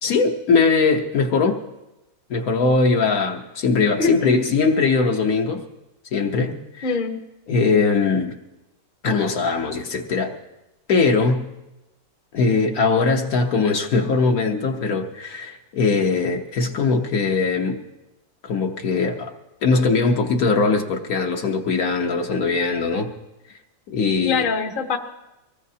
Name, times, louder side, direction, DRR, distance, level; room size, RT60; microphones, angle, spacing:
voice 1, 0.0-1.6 2.3-5.6 6.1-6.9 7.5-8.4 9.0-10.3 10.9-11.5 12.3-17.8 18.4-19.3 19.6-23.1 23.9-24.4, left 4 dB, 65° left, 3 dB, 1.5 m, -20 dB
voice 2, 4.0-4.4 6.8-7.2 24.2-25.0, left 4 dB, 40° left, 5 dB, 0.9 m, -23 dB
24.0 x 18.5 x 2.8 m, 0.95 s
omnidirectional pair, 1.7 m